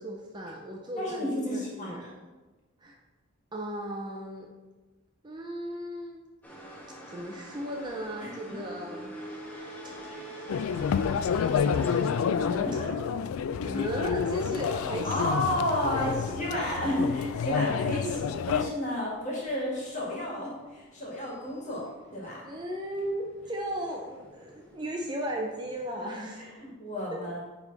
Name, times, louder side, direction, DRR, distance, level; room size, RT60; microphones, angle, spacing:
voice 1, 0.0-2.1 2.8-3.0 3.5-4.5 5.2-6.2 7.0-9.2 10.4-10.5 13.6-17.0 22.4-26.5 27.1-27.2, right 1 dB, 20° right, 0 dB, 0.5 m, -36 dB
voice 2, 1.0-2.0 8.2-8.3 10.0-10.2 12.4-12.9 15.0-21.8 22.1-22.4 26.0-27.4, left 1 dB, 35° left, -4 dB, 2.0 m, -32 dB
sound 1, 6.4-25.9, right 1 dB, 10° left, 1.3 m, -48 dB
Cable car journey, 10.5-18.7, left 7 dB, 85° left, 0.3 m, -29 dB
9.3 x 3.6 x 4.0 m, 1.2 s
head